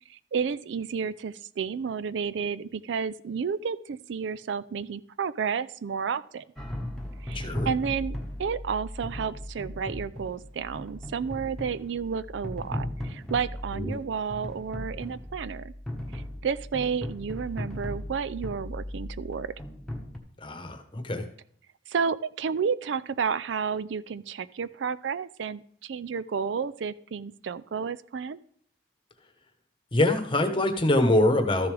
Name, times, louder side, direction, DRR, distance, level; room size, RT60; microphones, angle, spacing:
voice 1, 0.1-6.4 7.2-15.7 16.1-19.5 21.9-28.4, right 6 dB, 75° right, 15 dB, 0.4 m, -31 dB
sound 1, 6.6-20.2, left 1 dB, ahead, 1.3 m, -37 dB
voice 2, 7.3-7.7 13.7-14.0 20.4-21.3 29.9-31.7, left 1 dB, 25° left, 7 dB, 1.1 m, -24 dB
13.5 x 7.0 x 3.3 m, 0.63 s
head